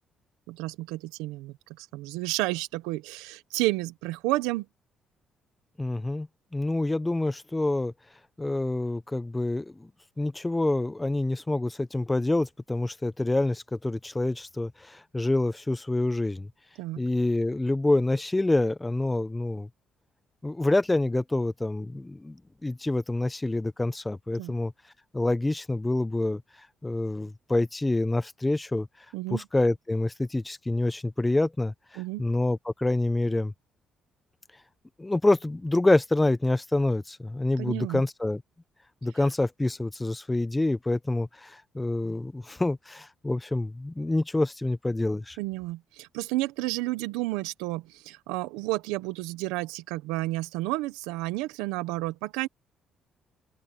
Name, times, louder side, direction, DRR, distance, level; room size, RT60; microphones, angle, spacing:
voice 1, 0.5-4.7 16.8-17.0 24.4-24.5 29.1-29.4 32.0-32.3 37.6-38.0 45.4-52.5, right 19 dB, 90° right, 1.2 m, -31 dB
voice 2, 5.8-6.3 6.5-7.9 8.4-9.9 10.2-16.5 17.0-19.7 20.4-22.4 22.6-24.7 25.1-26.4 26.8-28.9 29.3-33.5 35.0-38.4 39.0-45.4, left 2 dB, 15° left, 1.1 m, -27 dB
open air
supercardioid pair, 65°, 0 cm